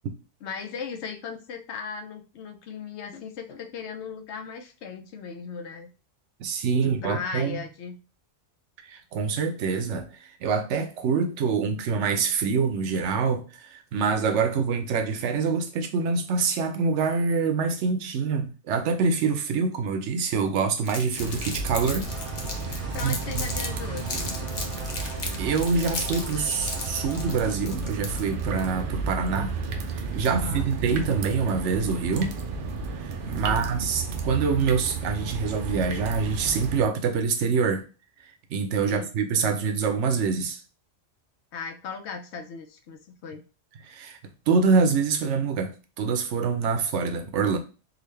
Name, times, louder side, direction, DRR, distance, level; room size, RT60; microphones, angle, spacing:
voice 1, 0.4-5.9 6.8-8.0 22.8-24.8 30.2-30.7 33.5-33.7 38.9-39.1 41.5-43.4, left 5 dB, 75° left, 0.9 m, -37 dB
voice 2, 6.4-7.6 8.8-22.1 23.0-23.5 25.4-29.6 30.1-32.3 33.0-37.8 38.5-40.6 43.8-44.2 44.5-47.6, right 5 dB, 85° right, 0.9 m, -25 dB
Crumpling crinkling, 20.9-23.7 24.0-28.4, left 3 dB, 45° left, 0.7 m, -35 dB
sound 1, 21.2-36.8, right 4 dB, 60° right, 0.7 m, -32 dB
sound 2, 22.0-27.5, equal, 30° right, 1.2 m, -42 dB
3.7 x 2.4 x 3.2 m
omnidirectional pair, 1.2 m